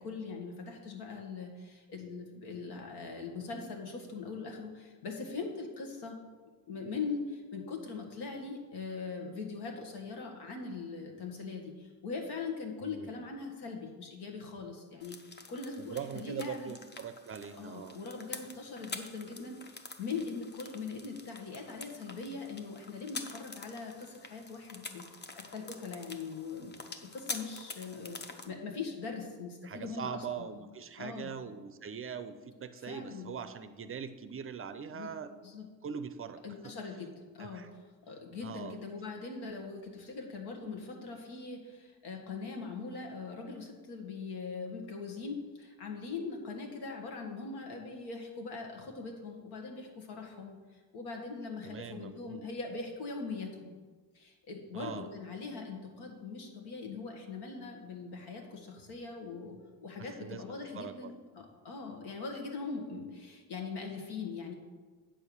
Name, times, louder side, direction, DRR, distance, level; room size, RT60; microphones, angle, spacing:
voice 1, 0.0-6.2 6.7-16.8 17.5-28.2 28.4-30.4 31.0-31.3 32.8-33.3 34.9-35.1 35.4-35.7 36.4-53.7 54.1-64.5, left 4 dB, 85° left, 2 dB, 1.7 m, -41 dB
voice 2, 12.8-13.2 15.8-18.0 29.6-35.3 35.8-36.7 37.4-37.7 38.4-38.7 51.6-52.4 54.7-55.1 60.2-61.1, right 7 dB, 35° right, 11 dB, 0.5 m, -42 dB
sound 1, 15.0-28.5, left 3 dB, 25° left, 0.7 m, -47 dB
8.7 x 4.6 x 7.0 m, 1.4 s
cardioid pair, 115°, 39 cm